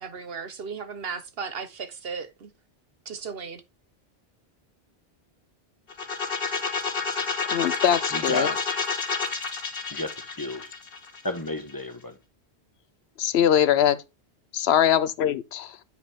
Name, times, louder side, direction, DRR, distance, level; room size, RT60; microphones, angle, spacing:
voice 1, 0.0-2.5 3.1-3.6, right 5 dB, 65° right, 1.2 m, -36 dB
sound 1, 5.9-11.7, left 5 dB, 55° left, 1.5 m, -29 dB
voice 2, 7.5-8.5 13.2-14.0 14.5-15.8, left 10 dB, 75° left, 0.8 m, -22 dB
voice 3, 8.1-8.6 9.9-10.7 11.2-12.2, left 1 dB, 20° left, 1.1 m, -32 dB
8.9 x 5.2 x 3.5 m
omnidirectional pair, 1.1 m